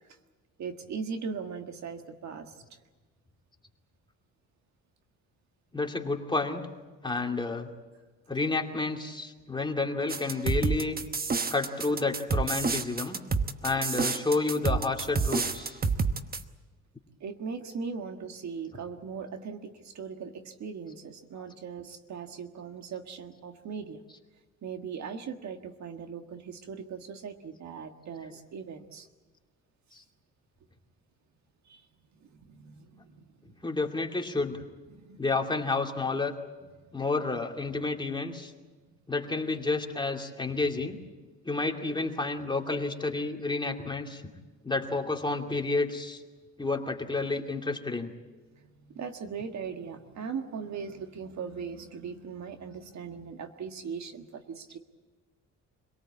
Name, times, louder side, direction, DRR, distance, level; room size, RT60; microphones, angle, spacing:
voice 1, 0.6-2.8 17.2-24.0 24.6-29.1 31.6-31.9 32.1-33.7 34.9-35.3 36.8-36.9 48.5-54.8, right 6 dB, 65° right, 6 dB, 1.7 m, -39 dB
voice 2, 5.7-6.6 7.0-7.7 8.3-11.0 11.5-13.2 13.6-15.8 29.9-30.0 33.6-34.6 35.2-36.4 36.9-38.5 39.1-41.0 41.5-44.2 44.6-46.2 46.6-48.1, left 3 dB, 15° left, 2 dB, 2.5 m, -30 dB
sound 1, 10.1-16.4, right 4 dB, 30° right, 1.1 m, -28 dB
25.5 x 18.0 x 8.6 m, 1.3 s
cardioid pair, 90°, 30 cm